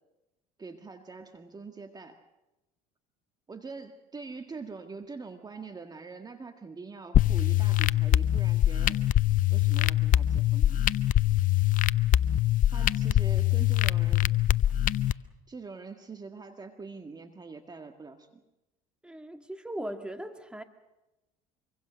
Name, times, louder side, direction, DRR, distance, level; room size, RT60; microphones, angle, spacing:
voice 1, 0.6-2.2 3.5-9.0 9.5-10.9 12.7-14.3 15.5-18.4, right 4 dB, 20° right, 6 dB, 1.8 m, -44 dB
sound 1, 7.1-15.1, left 12 dB, 50° left, 0.8 m, -24 dB
voice 2, 19.0-20.6, right 1 dB, 5° right, 7 dB, 2.2 m, -38 dB
25.0 x 24.0 x 6.4 m, 0.97 s
supercardioid pair, 90°, 18 cm